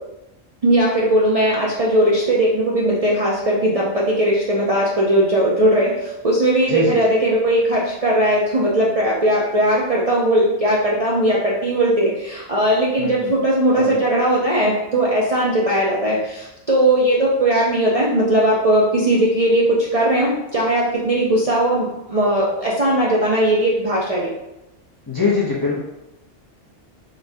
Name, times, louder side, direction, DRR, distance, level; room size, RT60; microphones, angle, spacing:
voice 1, 0.6-6.0 6.2-24.3, right 1 dB, 40° right, -5 dB, 0.5 m, -18 dB
voice 2, 6.7-7.1 13.0-13.4 13.7-14.1 25.1-25.7, left 4 dB, 25° left, -5 dB, 0.5 m, -23 dB
3.9 x 3.5 x 2.6 m, 0.92 s
omnidirectional pair, 1.3 m